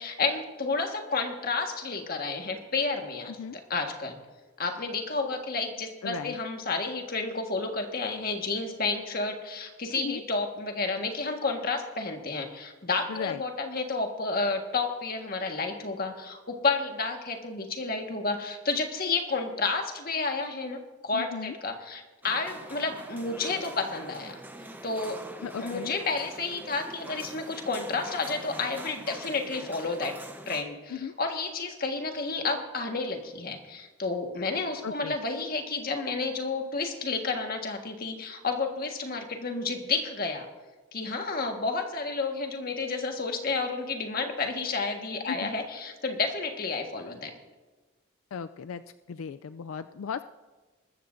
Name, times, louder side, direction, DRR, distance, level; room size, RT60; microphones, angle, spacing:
voice 1, 0.0-3.3 3.7-4.2 4.6-24.4 24.8-25.2 25.6-30.1 30.5-40.5 40.9-47.3, left 3 dB, 45° left, 3 dB, 1.6 m, -31 dB
voice 2, 6.0-6.3 9.9-10.2 13.1-13.4 21.1-21.6 25.4-26.0 30.9-31.1 34.8-35.2 45.3-45.5 48.3-48.8 49.1-50.2, left 7 dB, 90° left, 11 dB, 0.4 m, -36 dB
sound 1, 22.2-30.6, right 1 dB, 10° right, 0.9 m, -44 dB
21.0 x 13.5 x 2.6 m, 1.3 s
head